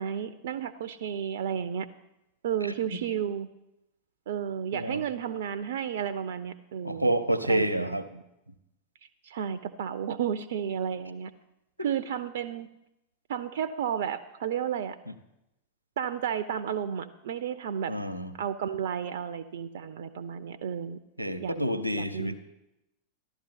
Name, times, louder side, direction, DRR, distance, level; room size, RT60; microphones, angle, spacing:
voice 1, 0.0-1.9 2.4-3.5 4.3-7.1 7.5-8.2 9.2-11.3 11.8-12.7 13.3-15.0 16.0-17.9 18.3-21.0 21.4-21.5 21.9-22.3, right 8 dB, 55° right, 12 dB, 0.5 m, -32 dB
voice 2, 2.6-3.0 4.7-5.0 6.8-8.0 11.8-11.9 17.9-18.3 21.2-22.3, right 1 dB, 90° right, 12 dB, 0.9 m, -29 dB
14.0 x 11.5 x 4.2 m, 0.90 s
figure-of-eight pair, 90°, 0 cm